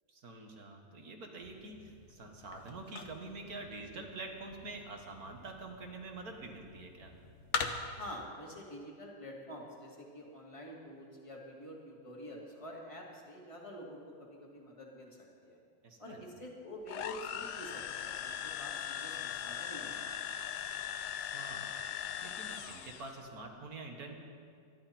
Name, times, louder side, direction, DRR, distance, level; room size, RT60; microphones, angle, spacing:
voice 1, 0.1-7.1 15.8-16.2 21.2-21.7 22.2-24.1, right 3 dB, 55° right, 2 dB, 2.1 m, -46 dB
sound 1, 1.4-8.2, left 5 dB, 50° left, 1.1 m, -43 dB
voice 2, 7.9-15.6 16.0-20.1, equal, 15° left, -2 dB, 2.3 m, -47 dB
sound 2, 16.9-23.2, left 9 dB, 70° left, 1.2 m, -40 dB
24.0 x 11.5 x 4.4 m, 2.2 s
omnidirectional pair, 1.9 m